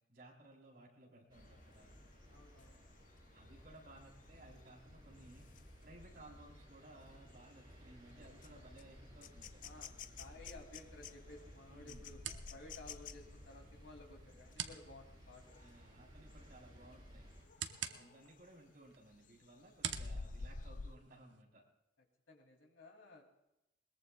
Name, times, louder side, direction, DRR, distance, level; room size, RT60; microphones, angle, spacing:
voice 1, 0.1-2.0 3.3-5.5 5.8-9.8 11.7-12.1 15.6-17.2 17.9-21.6, right 1 dB, 55° right, -2 dB, 3.9 m, -59 dB
sound 1, 1.3-15.9 16.3-16.6 16.9-18.6 19.0-21.0, left 4 dB, 45° left, 0.5 m, -53 dB
sound 2, 1.3-17.4, equal, 25° right, 4.9 m, -58 dB
voice 2, 2.3-2.9 9.6-9.9 10.2-12.2 12.5-15.6 17.9-18.1 22.3-23.2, left 2 dB, 85° left, 2 dB, 2.9 m, -56 dB
sound 3, 10.5-21.4, right 8 dB, 85° right, 0.9 m, -50 dB
21.5 x 20.5 x 2.3 m, 0.90 s
head